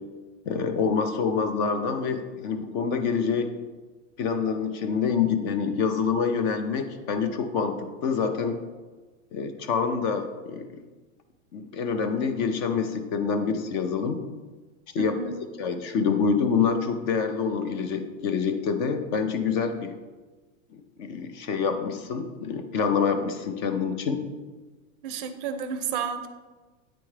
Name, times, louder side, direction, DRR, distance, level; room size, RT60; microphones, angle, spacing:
voice 1, 0.5-3.5 4.2-8.6 9.3-10.8 11.5-14.2 14.9-15.2 15.6-20.0 20.7-24.2, left 5 dB, 35° left, 7 dB, 0.5 m, -26 dB
voice 2, 15.0-15.4 25.0-26.3, right 6 dB, 40° right, 9 dB, 0.5 m, -31 dB
8.6 x 3.4 x 3.2 m, 1.3 s
hypercardioid pair, 135°, 40 cm